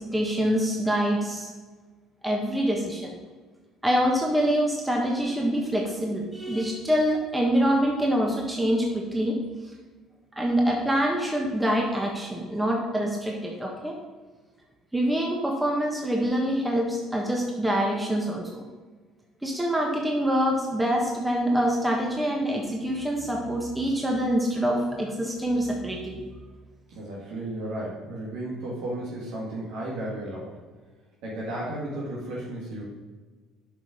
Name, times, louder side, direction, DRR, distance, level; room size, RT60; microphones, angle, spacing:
voice 1, 0.1-1.5 2.2-3.2 3.8-9.4 10.4-13.9 14.9-18.6 19.4-26.2, equal, 10° right, -1 dB, 1.4 m, -25 dB
voice 2, 26.9-30.5 31.2-32.8, right 1 dB, 75° right, -5 dB, 1.9 m, -34 dB
7.6 x 5.1 x 5.1 m, 1.4 s
supercardioid pair, 80°, 0 cm